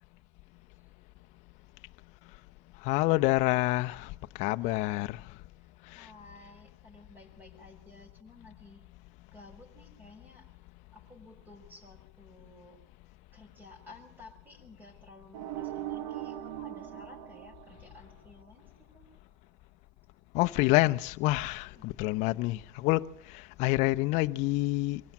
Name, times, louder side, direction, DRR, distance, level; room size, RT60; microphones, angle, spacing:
voice 1, 2.8-4.1 4.4-5.2 5.9-6.1 20.3-23.1 23.3-25.0, left 20 dB, 50° left, 0.7 m, -27 dB
voice 2, 4.6-5.2 5.6-8.8 9.3-10.5 10.9-12.8 13.3-19.1 21.6-21.9, left 2 dB, 10° right, 5.6 m, -54 dB
sound 1, 15.3-18.3, right 13 dB, 80° right, 1.4 m, -39 dB
24.5 x 16.5 x 7.3 m
supercardioid pair, 140°, 15 cm